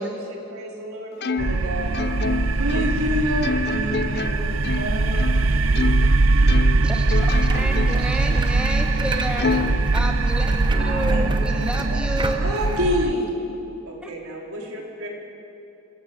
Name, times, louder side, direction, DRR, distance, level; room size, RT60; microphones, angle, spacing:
voice 1, 0.0-2.0 2.6-5.1 10.8-11.2 11.7-12.0 12.4-13.3 13.9-15.1, equal, 80° right, -1 dB, 4.0 m, -29 dB
Plucked string instrument, 1.2-6.2 6.5-8.2 8.6-8.7 9.4-10.6, left 4 dB, 45° left, 0.5 m, -29 dB
sound 1, 1.4-13.1, right 3 dB, 65° right, 0.6 m, -21 dB
voice 2, 4.8-6.9 7.7-9.8, right 3 dB, 45° right, 0 dB, 2.6 m, -41 dB
voice 3, 6.8-7.2 7.5-9.5 9.9-12.4, right 1 dB, 5° right, 2 dB, 1.2 m, -30 dB
sound 2, 7.2-12.8, right 2 dB, 20° right, 0.9 m, -35 dB
26.5 x 17.0 x 7.3 m, 3.0 s
head